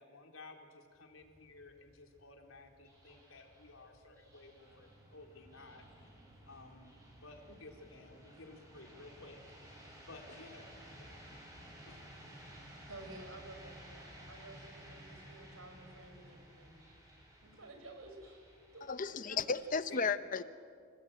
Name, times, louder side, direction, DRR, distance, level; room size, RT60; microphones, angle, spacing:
voice 1, 0.0-6.1 6.5-6.9 7.2-9.4 9.7-10.7 11.0-11.2 11.9-12.0 19.1-19.4 19.7-20.1, left 2 dB, 80° left, 3 dB, 3.8 m, -55 dB
sound 1, 0.9-19.9, equal, 15° right, 7.1 m, -56 dB
voice 2, 12.9-16.7 17.4-18.5 18.7-19.4, right 2 dB, 75° right, 5 dB, 5.5 m, -53 dB
voice 3, 18.9-20.4, left 5 dB, 40° left, 12 dB, 0.7 m, -34 dB
29.5 x 20.0 x 9.0 m, 2.3 s
head